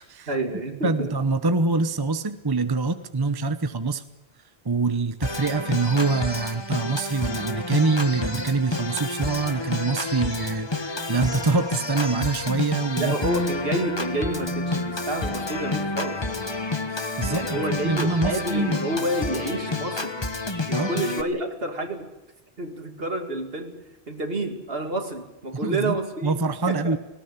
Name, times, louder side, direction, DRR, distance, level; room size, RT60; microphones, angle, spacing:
voice 1, 0.3-1.2 13.0-16.2 17.3-20.3 20.7-22.1 22.6-26.4 26.7-27.0, right 1 dB, 70° right, 5 dB, 2.6 m, -29 dB
voice 2, 0.8-4.0 4.6-13.2 16.9-18.8 20.7-20.9 25.6-25.9 26.2-27.0, right 3 dB, 25° right, 10 dB, 0.9 m, -25 dB
Organ, 5.2-21.2, left 2 dB, 25° left, 1.3 m, -29 dB
19.0 x 18.0 x 9.8 m, 0.95 s
omnidirectional pair, 1.0 m